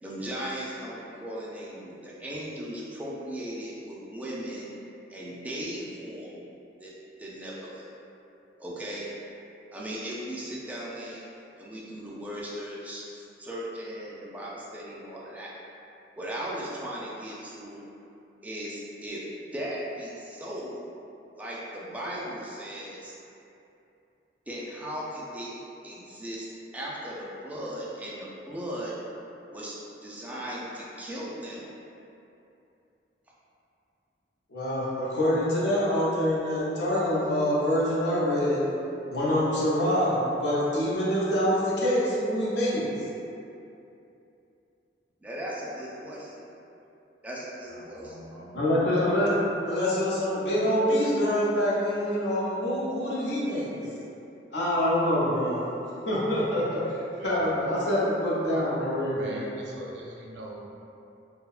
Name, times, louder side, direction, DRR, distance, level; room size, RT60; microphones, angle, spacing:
voice 1, 0.0-4.7 5.1-6.4 6.8-7.9 8.6-9.1 9.7-11.2 11.6-15.5 16.2-17.8 18.4-20.8 21.4-23.1 24.5-25.6 25.8-26.5 26.7-28.9 29.5-29.8 30.0-31.7 45.2-46.5 47.2-48.2, equal, 10° right, -6 dB, 0.3 m, -37 dB
voice 2, 34.5-38.6 39.1-43.1 48.5-49.3 49.6-53.9 54.5-55.6 56.1-59.4, equal, 75° left, -8 dB, 0.6 m, -26 dB
voice 3, 47.9-48.5 57.2-57.4 57.8-58.0 58.5-58.7 59.1-60.6, right 1 dB, 80° right, -2 dB, 0.4 m, -42 dB
2.6 x 2.1 x 2.3 m, 2.8 s
head